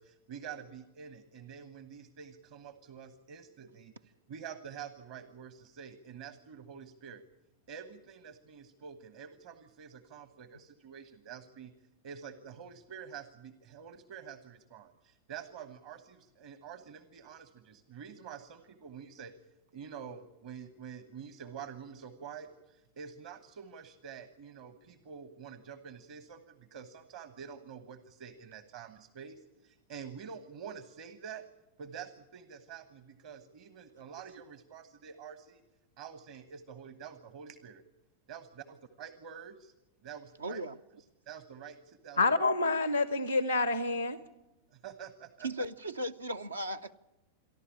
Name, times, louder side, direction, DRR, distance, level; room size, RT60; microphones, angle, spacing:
voice 1, 0.0-7.2 7.7-11.7 12.0-19.3 19.7-31.4 31.8-35.6 36.0-37.8 38.3-38.5 39.0-39.7 40.0-40.6 41.3-42.2 44.7-45.6, right 7 dB, 50° right, 12 dB, 1.2 m, -47 dB
voice 2, 40.4-40.8 45.4-46.9, right 1 dB, 75° right, 9 dB, 0.7 m, -36 dB
voice 3, 42.2-44.2, left 3 dB, 90° left, 14 dB, 0.8 m, -28 dB
28.0 x 11.5 x 9.9 m, 0.95 s
figure-of-eight pair, 90°, 0 cm